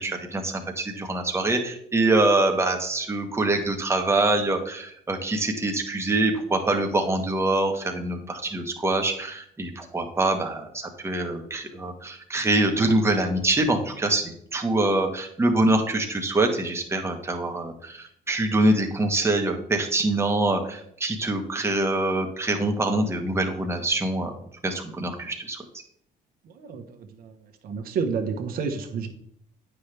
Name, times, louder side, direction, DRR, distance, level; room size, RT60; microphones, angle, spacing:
voice 1, 0.0-24.3 24.6-25.6, right 2 dB, 15° right, 3 dB, 1.3 m, -24 dB
voice 2, 26.4-27.4 27.6-29.1, right 5 dB, 60° right, 4 dB, 1.2 m, -30 dB
9.1 x 5.8 x 3.4 m, 0.67 s
cardioid pair, 110°, 17 cm